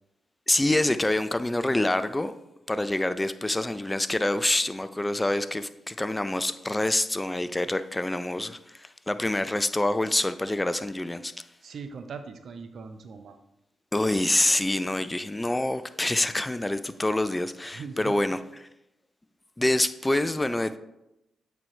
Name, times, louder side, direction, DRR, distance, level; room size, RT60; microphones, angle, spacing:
voice 1, 0.5-2.3 2.7-11.4 13.9-18.4 19.6-20.8, left 1 dB, 20° left, 0.4 m, -26 dB
voice 2, 11.6-13.4 17.7-18.2, right 5 dB, 65° right, 0.5 m, -40 dB
8.6 x 4.5 x 3.1 m
hypercardioid pair, 45°, 0 cm